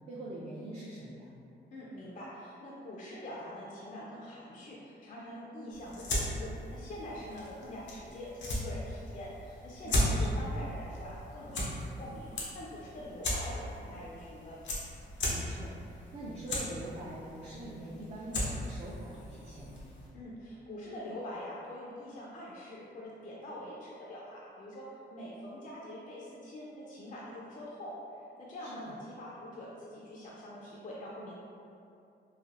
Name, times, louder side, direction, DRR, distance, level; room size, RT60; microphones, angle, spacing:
voice 1, 0.1-1.3 9.8-10.4 15.3-19.9 28.6-29.0, right 1 dB, 35° right, -7 dB, 0.4 m, -43 dB
voice 2, 1.7-14.6 20.1-31.3, left 1 dB, 45° left, -6 dB, 0.4 m, -44 dB
sound 1, 5.7-20.1, left 1 dB, 80° left, 0.6 m, -37 dB
3.2 x 2.4 x 2.4 m, 2.6 s
cardioid pair, 115°, 19 cm